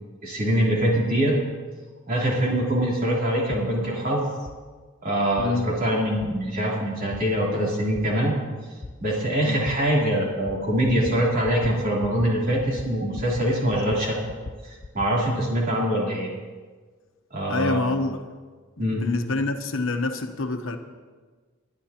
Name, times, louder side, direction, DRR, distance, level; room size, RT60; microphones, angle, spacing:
voice 1, 0.2-1.4 2.1-4.2 5.0-8.3 9.0-14.2 14.6-16.3 17.3-17.8 18.8-19.0, right 1 dB, 45° right, 3.4 m, -24 dB
sound 1, 3.5-3.7 4.5-4.6 5.4-5.5 6.2-6.3 7.1-7.2 7.9-8.1 8.8-8.9 9.7-9.8 10.5-10.6 10.9-11.2 11.5-11.7 12.0-12.3 12.6-13.5 13.7-15.1, left 2 dB, 30° left, 0.5 m, -37 dB
voice 2, 5.4-5.8 9.4-9.7 17.5-18.3 18.8-20.8, left 2 dB, 70° left, 1.0 m, -27 dB
21.5 x 11.0 x 2.9 m
head